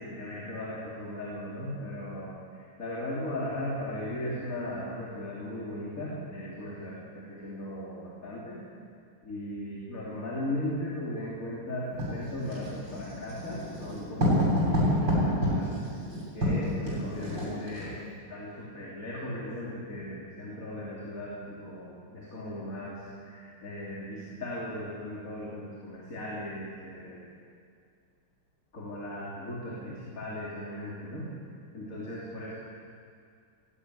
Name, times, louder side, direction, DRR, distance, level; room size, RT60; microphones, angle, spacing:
voice 1, 0.0-8.6 9.2-15.7 16.3-18.0 18.3-27.3 28.7-31.3 31.7-32.5, left 1 dB, 40° left, -6 dB, 3.7 m, -37 dB
Writing, 12.0-17.9, equal, 55° right, 8.7 m, -28 dB
18.0 x 15.5 x 9.5 m, 2.2 s
omnidirectional pair, 2.3 m